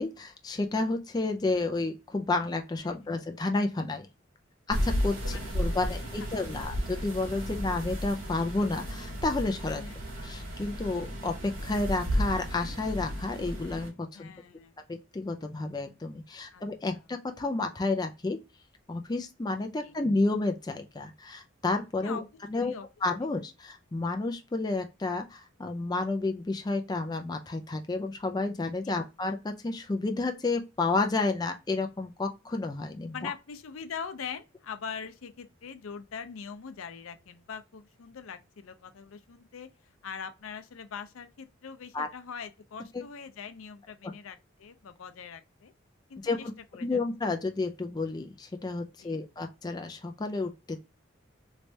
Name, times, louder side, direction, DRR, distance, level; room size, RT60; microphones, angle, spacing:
voice 1, 0.0-4.1 4.7-9.8 10.2-14.3 14.9-18.4 18.9-22.2 22.5-22.7 23.0-33.3 41.9-42.1 42.9-43.0 46.2-46.4 46.8-50.8, left 3 dB, 20° left, 0.4 m, -31 dB
voice 2, 2.8-3.2 5.2-6.7 9.6-10.0 14.1-14.8 16.5-16.6 16.9-17.0 19.8-19.9 22.0-22.3 22.5-22.9 28.9-29.0 33.1-39.7 40.0-45.7 46.1-47.0 49.0-49.2, left 6 dB, 90° left, 0.5 m, -42 dB
sound 1, 4.7-13.9, equal, 85° right, 1.6 m, -33 dB
3.2 x 3.2 x 2.7 m
head